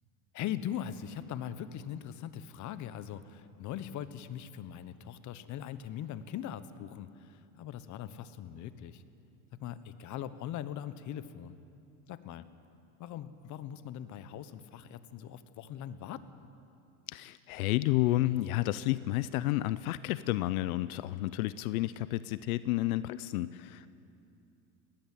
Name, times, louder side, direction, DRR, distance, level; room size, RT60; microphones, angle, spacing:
voice 1, 0.3-9.0 9.6-11.6 12.1-12.5 13.0-16.2, left 10 dB, 45° left, 13 dB, 1.1 m, -41 dB
voice 2, 17.1-23.9, left 16 dB, 85° left, 16 dB, 0.7 m, -31 dB
19.5 x 14.5 x 9.2 m, 2.7 s
supercardioid pair, 125°, 42 cm